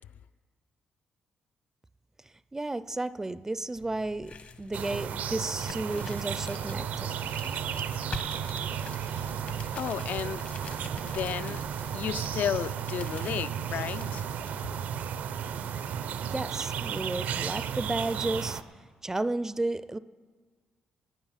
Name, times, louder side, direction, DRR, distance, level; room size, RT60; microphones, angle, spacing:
voice 1, 2.5-7.2 16.3-18.6 19.0-20.0, right 2 dB, 15° right, 0.4 m, -33 dB
sound 1, 3.7-14.6, left 5 dB, 55° left, 1.1 m, -46 dB
sound 2, 4.7-18.6, right 8 dB, 75° right, 0.6 m, -34 dB
voice 2, 9.7-10.5 11.0-11.6 11.9-14.2, left 9 dB, 75° left, 0.4 m, -33 dB
18.5 x 8.7 x 5.7 m
cardioid pair, 80°, 3 cm